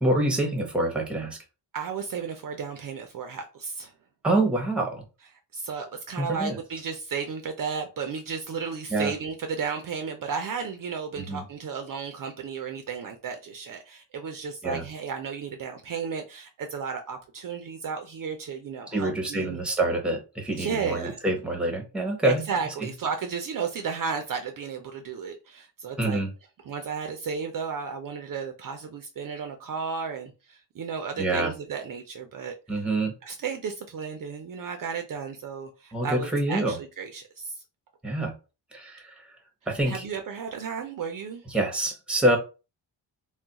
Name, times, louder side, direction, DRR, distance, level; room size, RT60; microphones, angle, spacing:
voice 1, 0.0-1.4 4.2-5.0 6.2-6.6 8.9-9.1 11.2-11.4 14.6-14.8 18.9-22.4 22.8-22.9 26.0-26.3 31.2-31.5 32.7-33.1 35.9-36.8 38.0-38.3 38.7-39.1 39.7-40.1 41.5-42.4, right 1 dB, ahead, 0.7 m, -26 dB
voice 2, 1.7-3.9 5.5-19.6 20.6-21.2 22.2-26.2 26.6-32.8 33.2-37.5 39.8-41.4, right 6 dB, 50° right, 0.4 m, -33 dB
2.3 x 2.1 x 3.9 m
wide cardioid pair, 135°, 44 cm